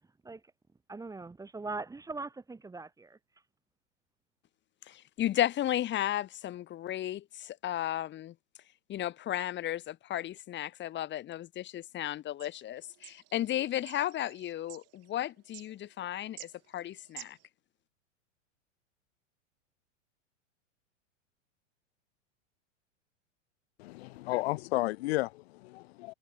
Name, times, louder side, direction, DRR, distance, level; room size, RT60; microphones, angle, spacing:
voice 1, 0.9-3.2, right 3 dB, 10° right, 2.0 m, -41 dB
voice 2, 4.9-8.3 8.9-17.4, left 12 dB, 30° left, 2.4 m, -34 dB
sound 1, 12.4-17.5, right 19 dB, 40° right, 7.4 m, -52 dB
voice 3, 23.8-26.1, left 20 dB, 55° left, 0.9 m, -33 dB
hypercardioid pair, 110°, 38 cm